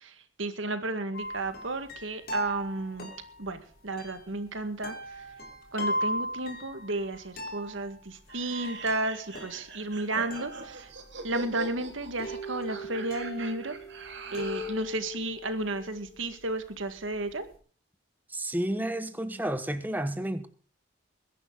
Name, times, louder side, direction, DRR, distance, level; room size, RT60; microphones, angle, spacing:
voice 1, 0.0-3.1 3.4-5.2 5.7-10.9 11.2-13.8 14.3-17.5, right 2 dB, 80° right, 9 dB, 1.9 m, -33 dB
sound 1, 1.1-17.5, equal, 50° left, 3.0 m, -39 dB
sound 2, 8.3-14.8, right 3 dB, 65° right, 2.9 m, -42 dB
voice 2, 18.3-20.5, right 1 dB, 10° right, 10 dB, 1.0 m, -31 dB
21.5 x 10.5 x 4.0 m, 0.43 s
head